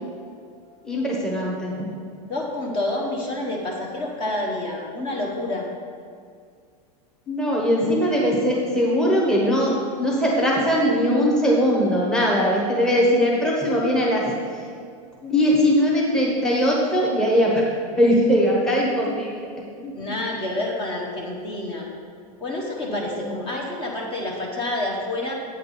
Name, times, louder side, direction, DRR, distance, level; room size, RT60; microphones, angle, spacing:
voice 1, 0.3-0.8 2.2-5.7 19.9-21.9 22.4-25.3, left 2 dB, 25° left, -1 dB, 1.0 m, -28 dB
voice 2, 0.8-1.9 7.3-14.7 15.2-17.7 18.0-19.5 19.8-19.9 22.8-23.3, equal, 5° left, -4 dB, 1.0 m, -21 dB
8.6 x 6.6 x 4.2 m, 2.2 s
supercardioid pair, 165°, 19 cm